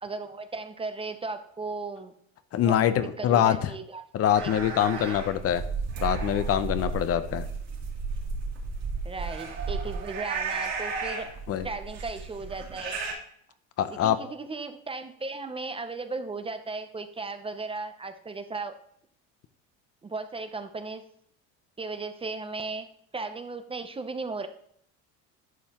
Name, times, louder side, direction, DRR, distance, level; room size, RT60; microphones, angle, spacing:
voice 1, 0.0-2.1 2.6-2.8 3.2-4.0 4.4-4.5 4.9-5.1 9.0-11.3 11.6-13.0 13.9-18.8 20.0-21.0 21.8-22.9 23.1-24.5, right 3 dB, 15° right, 9 dB, 0.6 m, -36 dB
voice 2, 2.5-3.6 4.1-5.6 6.0-7.5 11.5-11.7 13.8-14.2, left 10 dB, 45° left, 12 dB, 0.7 m, -24 dB
sound 1, 4.3-13.1, right 4 dB, 55° right, 2.9 m, -33 dB
11.0 x 5.5 x 3.0 m, 0.67 s
supercardioid pair, 110°, 32 cm